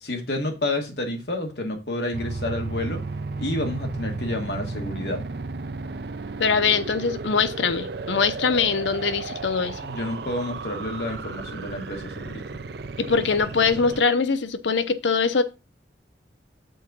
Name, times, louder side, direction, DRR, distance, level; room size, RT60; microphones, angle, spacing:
voice 1, 0.0-3.0 3.4-5.2 9.8-12.4, left 1 dB, 65° left, 1.6 m, -29 dB
sound 1, 2.1-14.0, right 3 dB, 60° right, 0.5 m, -34 dB
voice 2, 6.4-9.8 13.0-15.4, left 5 dB, 80° left, 0.7 m, -22 dB
6.3 x 3.8 x 6.1 m
head